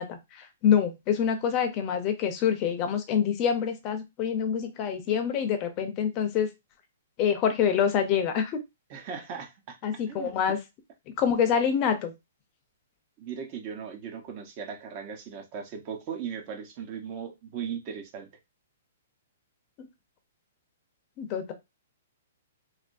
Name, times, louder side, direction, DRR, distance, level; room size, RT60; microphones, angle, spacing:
voice 1, 0.0-6.5 7.2-8.6 9.8-10.6 11.2-12.1 19.8-19.9 21.2-21.5, left 8 dB, 30° left, 7 dB, 0.7 m, -26 dB
voice 2, 8.9-9.8 10.1-10.3 11.3-11.4 13.2-18.3, right 7 dB, 35° right, 4 dB, 0.8 m, -38 dB
3.3 x 2.5 x 2.6 m, 0.22 s
hypercardioid pair, 155°, 0 cm